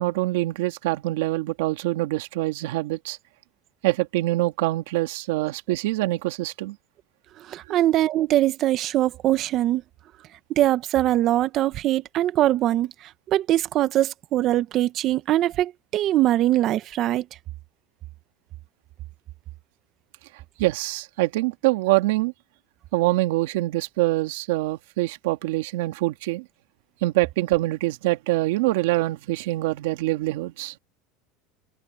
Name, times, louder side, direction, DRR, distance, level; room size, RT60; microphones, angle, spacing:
voice 1, 0.0-3.2 3.8-6.8 7.7-7.8 20.6-22.3 22.9-26.5 27.0-30.7, right 19 dB, 80° right, 2.1 m, -24 dB
voice 2, 7.5-9.8 10.6-12.9 13.3-17.2, right 13 dB, 45° right, 1.3 m, -22 dB
supercardioid pair, 125°, 0 cm